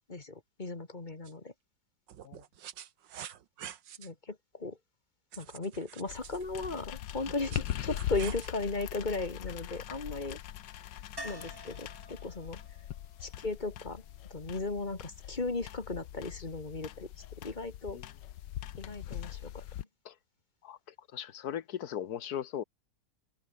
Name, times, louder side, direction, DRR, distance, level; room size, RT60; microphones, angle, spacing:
voice 1, 0.1-1.5 4.0-4.8 5.4-10.4 11.2-12.6 13.2-14.0 14.3-18.0 18.8-19.6, left 3 dB, 25° left, 2.3 m, -36 dB
sound 1, 1.2-1.3 2.1-4.1 5.3-6.5 7.3-8.5, right 10 dB, 90° right, 1.9 m, -47 dB
sound 2, 6.1-19.8, left 12 dB, 85° left, 1.5 m, -41 dB
sound 3, 11.2-15.0 17.7-17.8 18.0-18.1, equal, 10° right, 7.1 m, -50 dB
voice 2, 20.6-22.6, left 10 dB, 60° left, 1.6 m, -38 dB
omnidirectional pair, 1.9 m